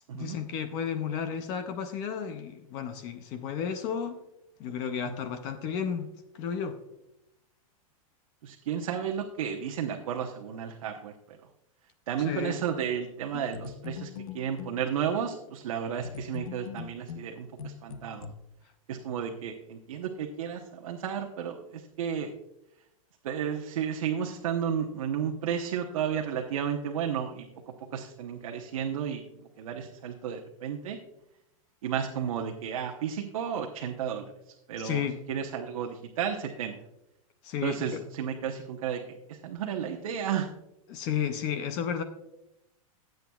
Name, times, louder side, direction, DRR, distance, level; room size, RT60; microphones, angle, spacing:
voice 1, 0.1-4.2 4.6-6.1 6.3-6.8 12.2-12.6 34.8-35.2 37.4-38.0 40.9-42.0, left 7 dB, 20° left, 9 dB, 0.4 m, -32 dB
voice 2, 8.4-11.4 12.1-18.3 18.9-22.3 23.2-27.5 27.9-29.2 29.6-31.0 31.8-34.3 34.7-36.8 37.6-40.5, right 8 dB, 70° right, 2 dB, 1.0 m, -33 dB
sound 1, 13.3-14.8 16.0-18.3, left 8 dB, 75° left, 0.8 m, -41 dB
17.0 x 7.9 x 2.3 m, 0.86 s
supercardioid pair, 180°, 18 cm